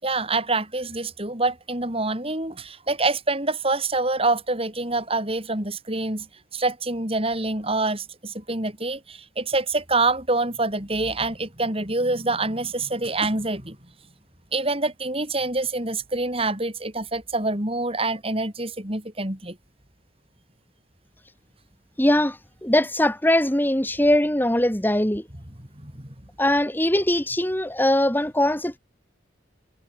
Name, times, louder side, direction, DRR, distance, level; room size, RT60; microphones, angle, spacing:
voice 1, 0.0-6.3 6.5-13.8 14.5-19.6 25.8-26.1, right 2 dB, 30° right, 6.0 m, -26 dB
voice 2, 22.0-25.2 26.4-28.8, left 1 dB, 10° left, 2.1 m, -21 dB
head